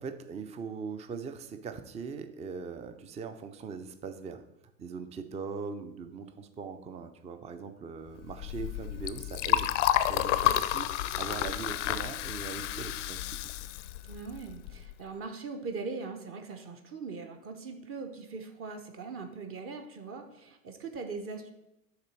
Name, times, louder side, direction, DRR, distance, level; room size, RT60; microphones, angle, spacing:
voice 1, 0.0-4.4 4.8-9.8 10.0-13.4, right 5 dB, 15° right, 9 dB, 0.5 m, -41 dB
Liquid, 8.2-14.9, left 13 dB, 60° left, 0.5 m, -30 dB
voice 2, 14.1-21.5, right 4 dB, 30° right, 4 dB, 0.9 m, -40 dB
6.6 x 4.0 x 5.9 m, 0.89 s
hypercardioid pair, 90°, 42 cm